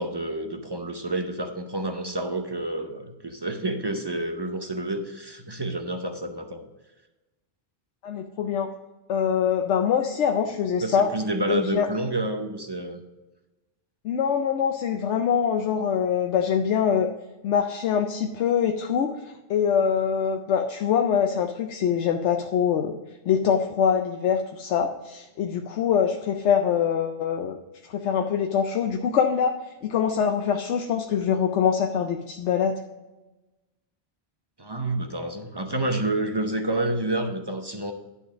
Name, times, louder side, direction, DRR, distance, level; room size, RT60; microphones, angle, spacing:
voice 1, 0.0-6.7 10.8-13.0 34.6-37.9, right 1 dB, 25° right, 5 dB, 0.6 m, -29 dB
voice 2, 8.0-8.7 9.1-11.1 11.5-11.9 14.0-17.1 17.4-22.9 23.3-27.6 27.9-32.8, left 7 dB, 85° left, 4 dB, 0.9 m, -24 dB
11.0 x 4.1 x 6.2 m, 1.1 s
omnidirectional pair, 1.2 m